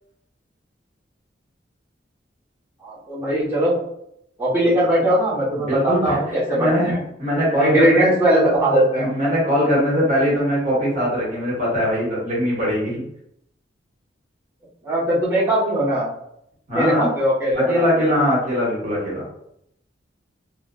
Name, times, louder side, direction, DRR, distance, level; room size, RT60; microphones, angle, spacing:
voice 1, 2.8-3.8 4.4-7.0 7.6-9.1 14.8-16.1 16.7-18.1, right 1 dB, 15° right, -11 dB, 1.0 m, -20 dB
voice 2, 5.5-6.9 7.2-8.0 9.0-13.0 16.7-17.1 17.5-19.2, equal, 45° right, -6 dB, 1.3 m, -21 dB
3.7 x 2.3 x 2.2 m, 0.76 s
head